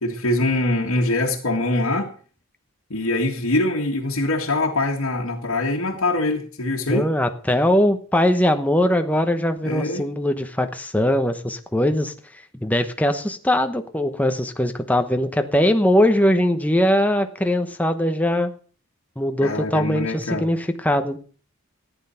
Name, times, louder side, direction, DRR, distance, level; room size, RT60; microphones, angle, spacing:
voice 1, 0.0-2.1 2.9-7.1 9.6-10.0 19.4-20.5, left 2 dB, 75° left, -3 dB, 1.9 m, -23 dB
voice 2, 6.9-18.5 19.2-21.2, left 1 dB, 5° left, 7 dB, 1.0 m, -21 dB
14.5 x 10.0 x 5.7 m, 0.42 s
head